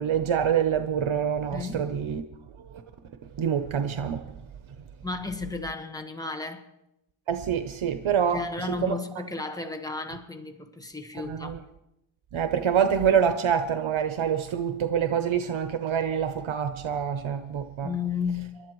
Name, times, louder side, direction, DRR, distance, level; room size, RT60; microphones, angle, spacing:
voice 1, 0.0-2.2 3.4-4.2 7.3-8.4 8.8-8.9 11.3-11.6 12.3-17.9, right 8 dB, 85° right, 0.8 m, -26 dB
voice 2, 1.5-1.8 5.0-6.6 8.3-11.6 17.8-18.6, left 4 dB, 10° left, 1.2 m, -33 dB
28.0 x 12.0 x 3.1 m
wide cardioid pair, 90°, 47 cm